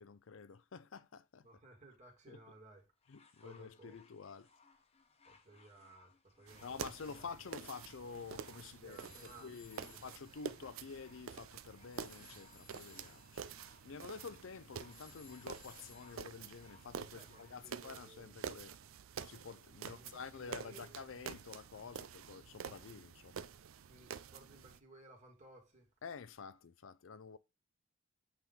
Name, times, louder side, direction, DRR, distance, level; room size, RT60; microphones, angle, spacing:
voice 1, 0.0-1.5 2.3-2.4 3.1-4.5 6.6-13.5 13.8-18.8 19.2-23.4 26.0-27.4, left 5 dB, 70° left, 0.5 m, -49 dB
voice 2, 1.4-2.9 3.4-4.0 5.2-7.2 8.6-10.1 17.1-18.4 19.8-21.0 23.9-25.9, right 2 dB, 35° right, 2.3 m, -59 dB
sound 1, 3.0-17.6 18.5-18.6, left 4 dB, 30° left, 1.0 m, -67 dB
sound 2, 6.5-24.8, right 7 dB, 80° right, 0.5 m, -49 dB
sound 3, 8.9-16.6, left 8 dB, 45° left, 1.2 m, -64 dB
8.7 x 3.6 x 4.0 m
head